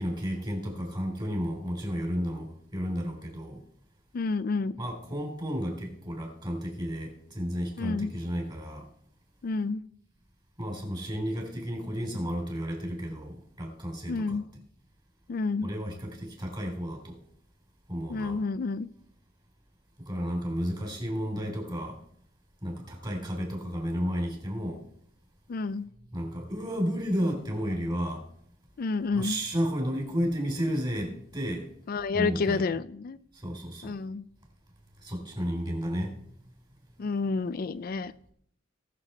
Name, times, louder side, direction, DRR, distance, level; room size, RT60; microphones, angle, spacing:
voice 1, 0.0-3.6 4.8-8.8 10.6-14.4 15.6-17.2 17.9-18.5 20.0-22.0 22.6-24.8 26.1-28.2 29.1-31.6 32.1-32.6 33.3-34.0 35.0-36.1, equal, 25° right, 1 dB, 3.2 m, -32 dB
voice 2, 4.1-4.8 7.8-8.1 9.4-9.8 14.1-14.5 15.3-15.7 18.1-18.9 25.5-25.8 28.8-29.4 31.9-33.2 33.8-34.3 37.0-38.1, left 4 dB, 50° left, 15 dB, 0.4 m, -29 dB
18.5 x 6.8 x 4.3 m, 0.65 s
head